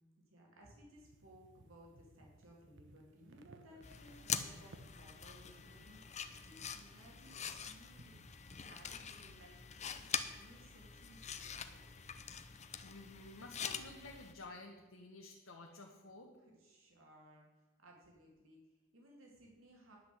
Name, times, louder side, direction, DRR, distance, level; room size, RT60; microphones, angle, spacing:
voice 1, 0.3-6.0 6.4-8.2 8.5-9.6 9.9-11.9 16.4-20.0, right 1 dB, 85° right, -1 dB, 2.5 m, -61 dB
sound 1, 1.0-9.3, right 1 dB, 60° right, 1.0 m, -60 dB
sound 2, 3.8-14.3, left 7 dB, 35° left, 0.7 m, -45 dB
voice 2, 12.4-16.3, left 2 dB, 70° left, 0 dB, 1.3 m, -53 dB
10.5 x 6.0 x 8.3 m, 1.2 s
head